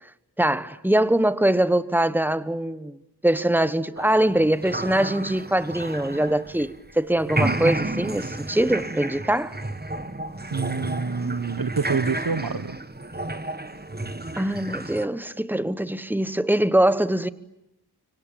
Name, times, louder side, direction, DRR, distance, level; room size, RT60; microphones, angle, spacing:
voice 1, 0.4-2.9 3.2-9.6 14.4-17.3, right 1 dB, 5° right, 1.1 m, -23 dB
sound 1, 4.0-6.9 7.2-15.1, right 2 dB, 25° right, 1.2 m, -31 dB
voice 2, 10.5-12.8, right 5 dB, 60° right, 1.1 m, -27 dB
25.0 x 25.0 x 9.1 m
wide cardioid pair, 45°, 39 cm